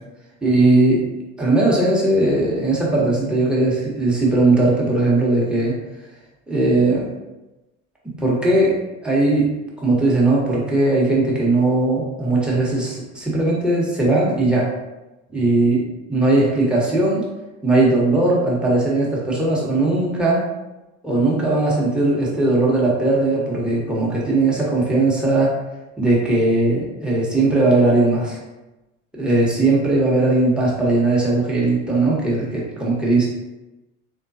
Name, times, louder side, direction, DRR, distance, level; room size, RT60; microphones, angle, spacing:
voice 1, 0.4-1.0 1.4-5.8 6.5-7.1 8.2-8.7 9.0-9.5 9.8-14.7 15.3-15.8 16.1-17.2 17.6-20.5 21.0-25.5 26.0-28.4 29.2-33.3, right 2 dB, ahead, -6 dB, 1.1 m, -18 dB
3.7 x 2.2 x 2.7 m, 1.0 s
figure-of-eight pair, 60°, 43 cm